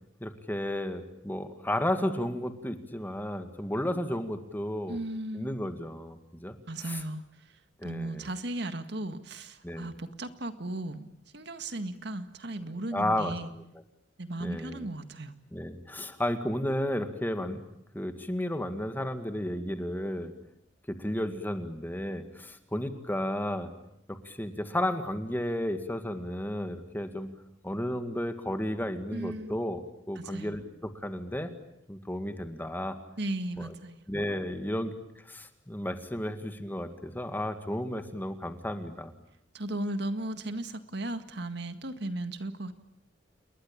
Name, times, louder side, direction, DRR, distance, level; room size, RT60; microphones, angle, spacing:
voice 1, 0.2-5.0 5.3-6.6 6.9-7.0 7.8-8.3 9.6-9.9 12.9-13.3 14.4-14.9 15.5-17.6 17.9-20.3 20.9-23.7 24.1-27.3 27.6-29.8 30.1-31.5 31.9-33.0 33.6-33.7 34.1-34.9 35.2-39.1, left 1 dB, 10° left, 8 dB, 2.1 m, -33 dB
voice 2, 4.9-5.6 6.7-11.1 11.3-13.5 14.2-15.3 29.1-29.6 30.2-30.6 33.2-34.0 39.5-42.7, right 1 dB, 60° right, 9 dB, 1.9 m, -36 dB
29.0 x 22.0 x 8.9 m, 0.79 s
head